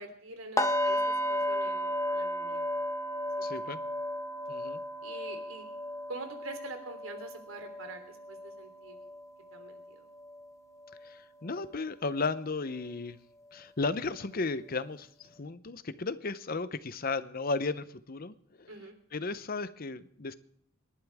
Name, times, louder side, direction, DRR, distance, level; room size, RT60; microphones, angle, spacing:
voice 1, 0.0-2.7 5.0-5.7 6.1-9.0 9.5-10.1 18.7-18.9, right 2 dB, 80° right, 5 dB, 3.2 m, -45 dB
sound 1, 0.6-10.5 10.8-11.1 11.5-11.7, equal, 15° left, 1.3 m, -34 dB
voice 2, 3.4-3.8 4.5-4.8 11.0-13.2 13.5-18.7 19.1-20.3, left 3 dB, 45° left, 14 dB, 0.7 m, -35 dB
27.5 x 11.5 x 3.6 m, 0.66 s
head